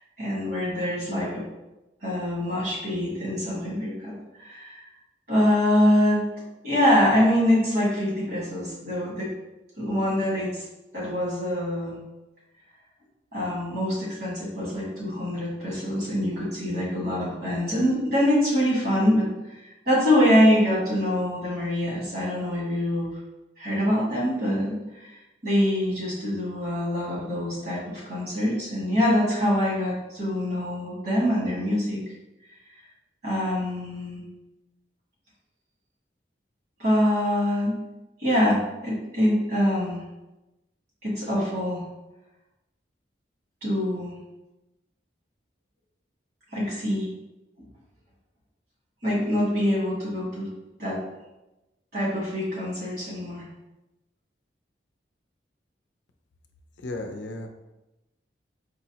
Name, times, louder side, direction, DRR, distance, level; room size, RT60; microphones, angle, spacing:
voice 1, 0.0-1.4 2.0-4.1 4.4-4.8 5.3-6.2 6.6-9.3 9.8-10.6 10.9-12.0 13.3-19.3 19.8-23.1 23.6-25.1 25.4-32.0 33.2-34.2 36.8-37.8 38.2-40.0 41.0-41.8 43.6-44.1 46.5-47.1 49.0-50.5 50.8-51.0 51.9-53.4, left 1 dB, 60° right, -6 dB, 1.5 m, -24 dB
voice 2, 56.8-57.5, left 2 dB, 80° left, 4 dB, 0.4 m, -34 dB
4.5 x 2.0 x 2.8 m, 0.99 s
head